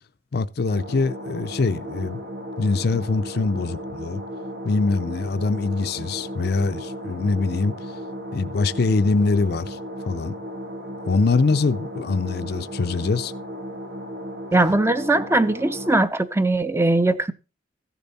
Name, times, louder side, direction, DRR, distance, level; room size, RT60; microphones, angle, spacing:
voice 1, 0.3-2.2 2.6-4.2 4.6-7.7 8.3-9.8 10.0-10.4 11.1-13.3, left 3 dB, 60° left, 0.5 m, -23 dB
sound 1, 0.7-16.0, equal, 70° right, 1.6 m, -35 dB
voice 2, 14.5-17.3, right 2 dB, 15° right, 0.6 m, -20 dB
15.0 x 7.0 x 4.0 m
head